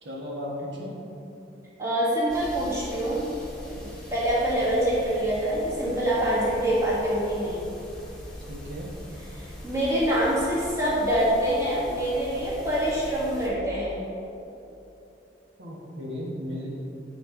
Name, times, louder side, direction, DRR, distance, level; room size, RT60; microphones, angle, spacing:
voice 1, 0.0-1.0 8.5-8.9 15.6-16.7, left 1 dB, 80° right, -4 dB, 1.4 m, -35 dB
voice 2, 1.8-3.3 3.7-3.8 4.1-7.7 9.3-14.0, right 1 dB, 15° right, -8 dB, 1.8 m, -25 dB
sound 1, 2.3-13.5, equal, 5° left, 1.3 m, -42 dB
8.6 x 4.3 x 5.1 m, 2.9 s
head